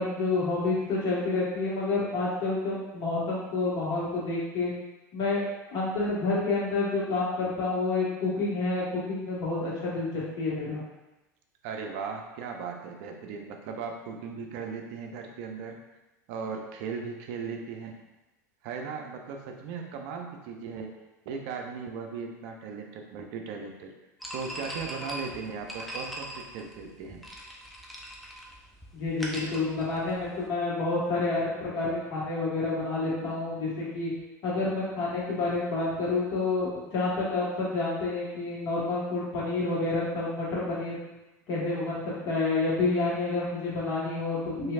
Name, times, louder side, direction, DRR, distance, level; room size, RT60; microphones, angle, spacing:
voice 1, 0.0-4.7 5.1-5.4 5.7-10.8 28.9-34.1 34.4-40.9 41.5-44.7, left 3 dB, 45° left, -6 dB, 1.3 m, -29 dB
voice 2, 11.6-15.8 16.3-17.9 18.6-20.9 21.3-23.9 24.3-27.2, right 5 dB, 60° right, 3 dB, 0.4 m, -37 dB
sound 1, 24.2-30.5, equal, ahead, 0.5 m, -41 dB
3.1 x 2.6 x 2.4 m, 1.0 s
hypercardioid pair, 90°, 10 cm